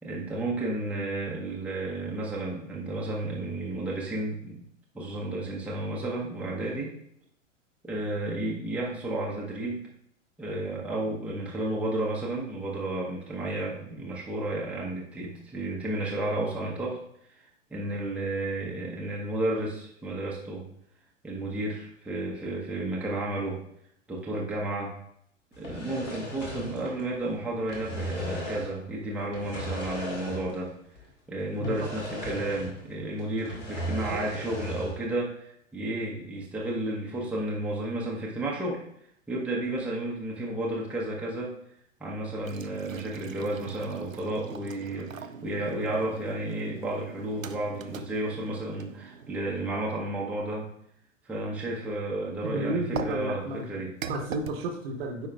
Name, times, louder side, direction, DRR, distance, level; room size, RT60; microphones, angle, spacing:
voice 1, 0.0-4.6 4.9-6.9 7.8-9.8 10.4-17.0 17.3-20.7 21.2-23.6 24.1-24.9 25.6-30.7 31.3-38.8 39.3-41.6 42.0-50.7 51.3-53.9, right 1 dB, 5° right, -4 dB, 0.9 m, -32 dB
sound 1, 25.5-27.3 27.6-28.8 29.3-30.7 30.9-31.1 31.6-32.9 33.2-35.0, equal, 70° left, 2.0 m, -37 dB
voice 2, 31.6-31.9 34.1-34.2 52.4-53.7 54.1-55.3, right 2 dB, 50° right, 4 dB, 1.1 m, -32 dB
sound 2, 42.4-50.1 52.9-54.6, right 6 dB, 90° right, 0.5 m, -42 dB
9.5 x 4.7 x 2.3 m, 0.71 s
figure-of-eight pair, 100°, 39 cm